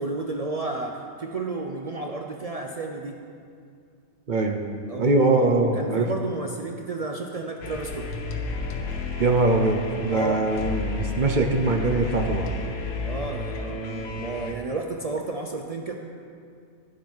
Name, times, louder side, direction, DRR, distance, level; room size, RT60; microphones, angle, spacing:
voice 1, 0.0-3.2 4.9-8.1 10.1-10.4 13.0-15.9, right 3 dB, 75° right, 2 dB, 0.3 m, -32 dB
voice 2, 4.3-4.6 5.0-6.1 9.2-12.5, right 2 dB, 45° right, 4 dB, 0.7 m, -22 dB
sound 1, 7.6-14.5, left 3 dB, 85° left, 1.4 m, -32 dB
11.0 x 7.4 x 5.5 m, 2.3 s
omnidirectional pair, 1.4 m